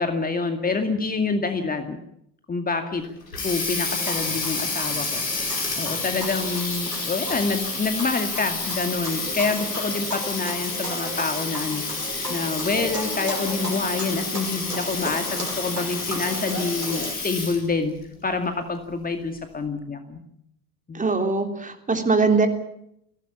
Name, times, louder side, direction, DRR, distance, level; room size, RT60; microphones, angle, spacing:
voice 1, 0.0-2.0 2.5-3.0 3.4-5.2 5.8-11.8 12.3-17.9 18.2-20.2 20.9-21.0, left 4 dB, 20° left, 6 dB, 2.3 m, -27 dB
Water tap faucet, 3.0-17.7, left 3 dB, 80° left, 5.5 m, -30 dB
sound 1, 3.9-17.1, equal, 85° right, 5.6 m, -35 dB
voice 2, 20.9-22.5, right 4 dB, 15° right, 6 dB, 3.4 m, -21 dB
22.0 x 17.5 x 8.7 m, 0.74 s
figure-of-eight pair, 75°, 48 cm